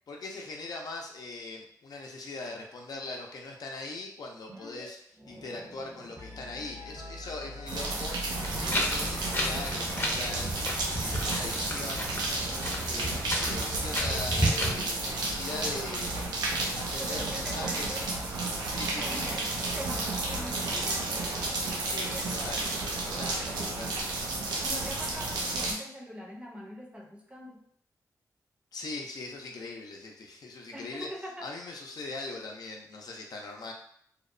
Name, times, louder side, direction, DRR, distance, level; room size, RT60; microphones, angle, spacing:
voice 1, 0.1-8.2 8.6-10.5 11.0-12.1 12.9-16.4 16.8-18.1 18.7-19.4 21.8-22.7 23.0-24.3 28.7-31.1 31.4-33.7, left 3 dB, 70° left, 1 dB, 0.5 m, -40 dB
sound 1, 4.5-4.9 5.1-10.1, right 1 dB, 55° right, 0.9 m, -43 dB
sound 2, 7.7-25.7, right 2 dB, 90° right, 0.4 m, -32 dB
Wind, 8.3-14.7, equal, 35° left, 0.7 m, -32 dB
voice 2, 17.0-18.1 19.0-21.1 22.1-22.6 24.6-27.7 30.7-31.5, equal, 15° right, -1 dB, 0.6 m, -43 dB
2.8 x 2.0 x 2.5 m, 0.67 s
cardioid pair, 50°, 7 cm